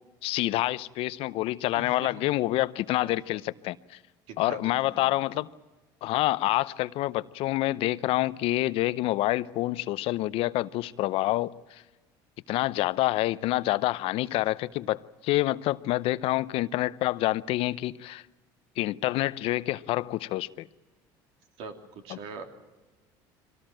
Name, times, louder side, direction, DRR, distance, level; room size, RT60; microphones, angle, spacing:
voice 1, 0.2-4.0 4.4-5.5 6.0-11.8 12.5-18.2 18.8-20.7 22.1-22.2, left 17 dB, 65° left, 0.7 m, -27 dB
voice 2, 1.7-2.3 3.0-3.1 4.3-5.1 21.6-22.5, right 4 dB, 70° right, 3.0 m, -42 dB
24.0 x 18.0 x 9.0 m
supercardioid pair, 100°, 10 cm